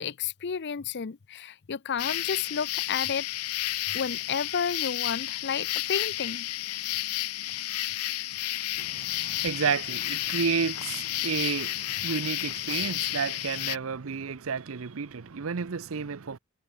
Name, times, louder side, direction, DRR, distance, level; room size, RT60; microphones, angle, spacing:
voice 1, 0.0-3.3 3.9-6.5, left 7 dB, 50° left, 0.5 m, -31 dB
sound 1, 2.0-13.8, left 15 dB, 85° left, 0.7 m, -32 dB
voice 2, 8.8-16.4, right 6 dB, 60° right, 0.6 m, -31 dB
head